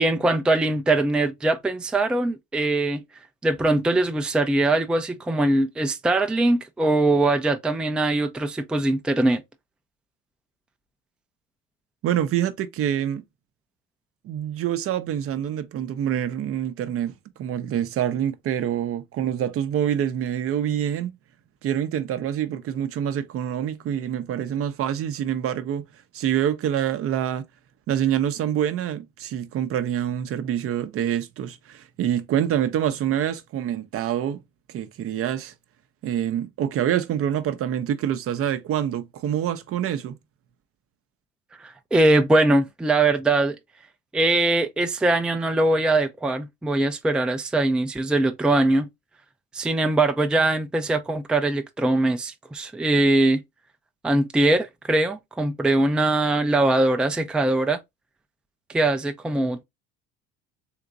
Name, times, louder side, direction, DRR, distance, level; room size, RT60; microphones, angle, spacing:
voice 1, 0.0-3.0 3.4-9.4 41.6-43.6 44.1-48.9 49.5-53.4 54.0-57.8 58.7-59.6, right 2 dB, 5° right, 0.4 m, -22 dB
voice 2, 12.0-13.2 14.2-17.1 17.4-21.1 21.6-25.9 26.1-27.5 27.9-34.4 34.7-35.5 36.0-40.2, right 10 dB, 50° right, 0.6 m, -26 dB
3.6 x 2.8 x 2.5 m
supercardioid pair, 85°, 30 cm